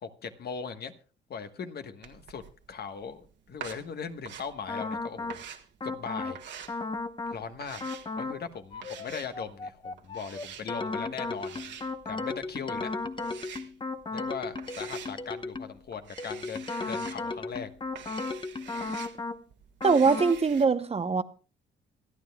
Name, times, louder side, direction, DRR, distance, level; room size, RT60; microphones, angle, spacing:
voice 1, 0.0-0.9 1.3-2.4 2.7-5.4 5.8-6.8 7.3-7.8 8.2-11.8 12.0-13.0 14.1-17.7, left 6 dB, 55° left, 1.2 m, -39 dB
sound 1, 2.0-20.7, right 8 dB, 65° right, 1.7 m, -47 dB
sound 2, 4.7-5.4 5.8-6.4 6.7-7.4 7.8-8.4 8.7-15.8 16.2-19.4 19.8-20.4, left 3 dB, 25° left, 0.9 m, -35 dB
voice 2, 19.8-21.2, right 5 dB, 30° right, 0.8 m, -22 dB
26.0 x 9.5 x 2.3 m
cardioid pair, 90°, 20 cm